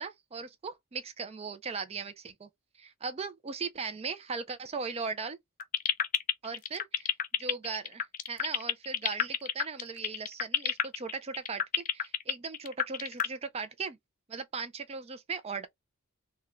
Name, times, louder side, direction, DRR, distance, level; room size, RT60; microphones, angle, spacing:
voice 1, 0.0-2.5 2.8-5.4 6.4-7.1 7.4-14.0 14.3-15.7, right 5 dB, 30° right, 0.4 m, -38 dB
sound 1, 5.6-13.3, left 9 dB, 35° left, 0.3 m, -28 dB
3.6 x 2.2 x 2.9 m
head